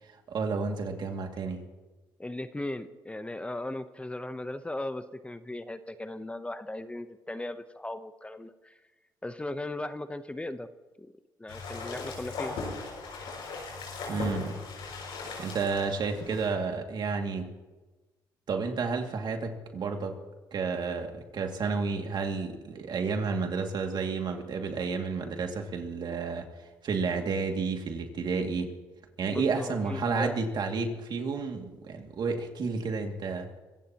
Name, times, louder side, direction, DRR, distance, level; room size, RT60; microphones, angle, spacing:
voice 1, 0.3-1.6 14.1-14.6 15.4-17.5 18.5-20.2 20.5-28.7 29.2-33.5, right 4 dB, 60° right, 3 dB, 2.4 m, -31 dB
voice 2, 2.2-8.8 9.2-10.7 11.0-11.1 11.4-12.5 29.3-30.4, left 1 dB, 15° left, 10 dB, 0.9 m, -37 dB
sound 1, 11.5-16.5, left 4 dB, 80° left, 6.1 m, -38 dB
24.5 x 15.5 x 3.0 m, 1.2 s
supercardioid pair, 70°, 9 cm